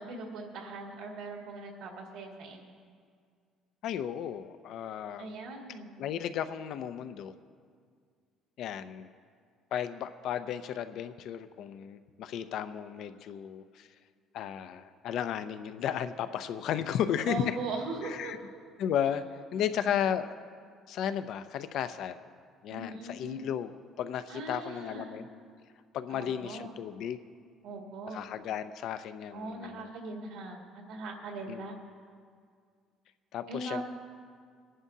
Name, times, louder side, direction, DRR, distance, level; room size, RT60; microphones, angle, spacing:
voice 1, 0.0-2.6 5.2-5.9 17.3-18.3 19.5-20.0 22.7-23.4 24.3-25.2 26.1-26.7 27.6-28.2 29.3-31.7 33.5-33.8, right 2 dB, 80° right, -1 dB, 2.1 m, -40 dB
voice 2, 3.8-5.3 6.0-7.3 8.6-9.1 9.7-13.9 14.3-17.6 18.0-18.4 18.8-19.2 19.5-20.3 20.9-22.2 22.6-25.3 25.9-27.2 28.1-29.9 31.5-31.7 33.3-33.8, left 9 dB, 55° left, 11 dB, 0.5 m, -34 dB
23.5 x 11.0 x 2.8 m, 2.1 s
cardioid pair, 165°, 0 cm